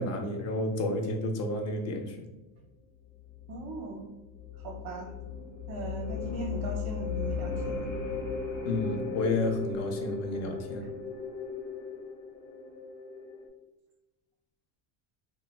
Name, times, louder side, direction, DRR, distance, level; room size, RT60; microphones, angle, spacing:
voice 1, 0.0-2.2 8.6-10.9, left 2 dB, 35° left, 4 dB, 0.4 m, -31 dB
sound 1, 3.2-13.5, left 5 dB, 90° left, 0.9 m, -37 dB
voice 2, 3.5-4.1 4.6-5.1 5.7-7.9, right 3 dB, 50° right, -1 dB, 0.6 m, -38 dB
3.2 x 2.1 x 2.3 m, 1.0 s
cardioid pair, 135°, 47 cm